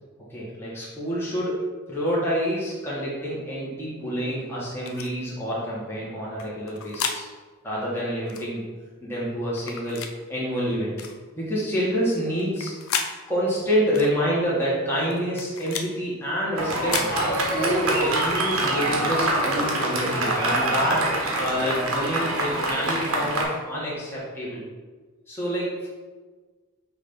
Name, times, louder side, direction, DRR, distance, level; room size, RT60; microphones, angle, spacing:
voice 1, 0.3-7.2 7.6-8.7 9.0-10.0 10.3-10.9 11.4-12.7 13.3-21.1 21.4-24.6 25.3-25.9, equal, 10° left, -8 dB, 1.4 m, -27 dB
sound 1, 4.8-5.1 6.4-7.2 8.3-8.5 9.6-10.1 11.0-11.2 12.4-13.1 13.9-14.1 15.1-15.9 16.7-17.1, left 6 dB, 75° left, 0.6 m, -32 dB
Fireworks, 16.6-23.4, right 1 dB, 85° right, 1.3 m, -25 dB
6.2 x 3.4 x 5.2 m, 1.4 s
head